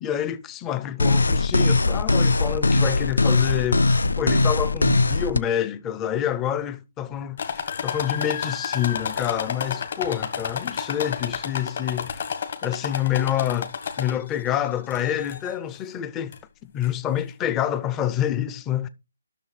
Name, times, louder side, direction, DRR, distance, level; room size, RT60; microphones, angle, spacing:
voice 1, 0.0-3.9 4.2-12.3 12.6-16.3 16.7-18.9, left 10 dB, 15° left, 0.5 m, -27 dB
sound 1, 1.0-5.4, left 2 dB, 85° left, 0.5 m, -20 dB
sound 2, 7.4-14.4 14.9-15.5 16.3-16.4 16.8-16.9, left 6 dB, 50° left, 1.3 m, -31 dB
12.5 x 6.3 x 3.3 m
hypercardioid pair, 165°, 0 cm